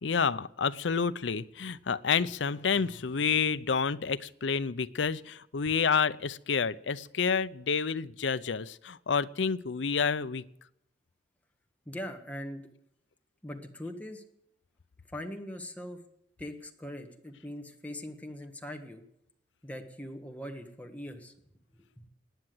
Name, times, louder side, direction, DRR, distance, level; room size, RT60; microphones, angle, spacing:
voice 1, 0.0-10.4, left 6 dB, 80° left, 14 dB, 0.6 m, -29 dB
voice 2, 11.8-12.6 13.4-14.2 15.1-16.0 16.4-19.0 19.6-21.3, left 1 dB, 10° left, 4 dB, 1.5 m, -41 dB
18.5 x 10.0 x 7.8 m, 0.78 s
head